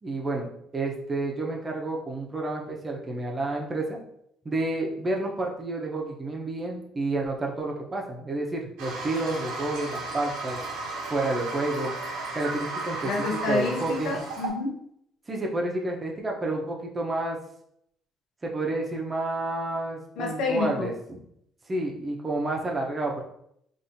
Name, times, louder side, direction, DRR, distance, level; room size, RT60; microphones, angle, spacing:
voice 1, 0.0-4.0 4.4-10.6 11.1-11.9 12.3-13.1 13.5-14.2 15.3-17.4 18.4-21.2 21.7-23.2, right 2 dB, 25° right, -1 dB, 0.9 m, -30 dB
Toilet flush, 8.8-14.5, right 3 dB, 85° right, 1.0 m, -34 dB
voice 2, 13.0-14.9 20.2-20.9, left 3 dB, 70° left, 1 dB, 0.7 m, -29 dB
4.1 x 2.7 x 2.7 m, 0.72 s
cardioid pair, 90°, 0 cm